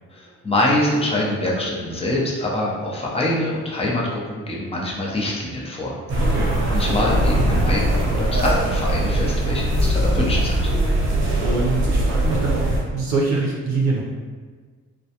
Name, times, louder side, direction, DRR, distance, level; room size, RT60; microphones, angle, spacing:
voice 1, 0.1-6.2 6.7-10.7, left 1 dB, 20° left, -4 dB, 0.6 m, -24 dB
sound 1, 6.1-12.8, right 1 dB, 40° right, 0.8 m, -21 dB
voice 2, 6.2-6.6 11.4-14.0, right 3 dB, 70° right, -4 dB, 0.5 m, -24 dB
2.3 x 2.1 x 2.8 m, 1.5 s
cardioid pair, 90°, 30 cm